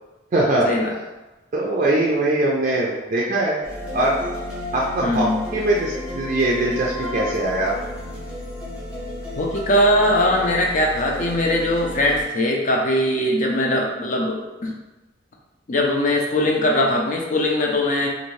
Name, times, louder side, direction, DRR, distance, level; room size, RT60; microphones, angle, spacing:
voice 1, 0.3-0.7 1.5-3.6 3.9-4.2 4.7-7.8, right 1 dB, 40° right, -4 dB, 0.4 m, -21 dB
sound 1, 3.6-12.2, left 1 dB, 5° right, 0.7 m, -33 dB
voice 2, 5.0-5.4 9.4-14.7 15.7-18.1, left 1 dB, 40° left, 1 dB, 0.5 m, -20 dB
2.6 x 2.5 x 3.1 m, 1.1 s
head